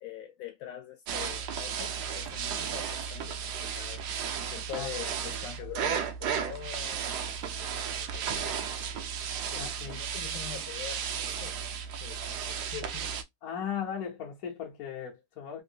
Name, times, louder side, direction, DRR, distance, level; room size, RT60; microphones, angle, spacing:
voice 1, 0.0-4.0 4.5-9.1 9.4-11.6 12.0-13.1, left 11 dB, 75° left, 1.3 m, -44 dB
sound 1, 1.1-13.2, right 7 dB, 75° right, 0.9 m, -34 dB
voice 2, 5.2-5.7 9.6-10.0 13.4-15.6, left 8 dB, 60° left, 1.0 m, -38 dB
3.4 x 2.5 x 2.7 m
omnidirectional pair, 2.3 m